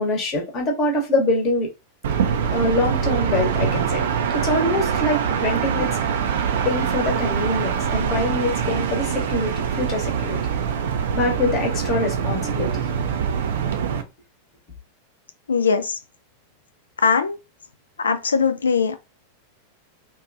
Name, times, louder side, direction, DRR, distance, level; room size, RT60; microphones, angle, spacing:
voice 1, 0.0-1.7 2.5-4.0 4.3-6.0 6.6-10.5 11.1-12.8, left 2 dB, 35° left, 1.0 m, -24 dB
sound 1, 2.0-14.0, right 7 dB, 60° right, 0.4 m, -24 dB
voice 2, 15.5-16.0 17.0-17.4 18.0-19.0, left 5 dB, 70° left, 0.3 m, -20 dB
2.9 x 2.2 x 2.5 m
figure-of-eight pair, 90°, 0 cm